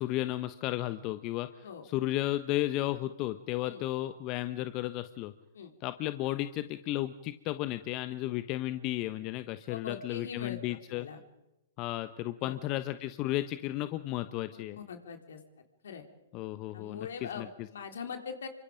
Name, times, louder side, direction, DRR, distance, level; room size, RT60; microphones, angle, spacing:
voice 1, 0.0-5.3 5.8-11.1 11.8-14.8 16.3-17.7, left 15 dB, 40° left, 11 dB, 1.1 m, -34 dB
voice 2, 9.7-11.2 12.4-12.6 14.5-15.4 15.8-16.0 16.7-18.5, left 6 dB, 70° left, 6 dB, 3.8 m, -42 dB
29.0 x 24.5 x 5.2 m, 0.92 s
hypercardioid pair, 115°, 0 cm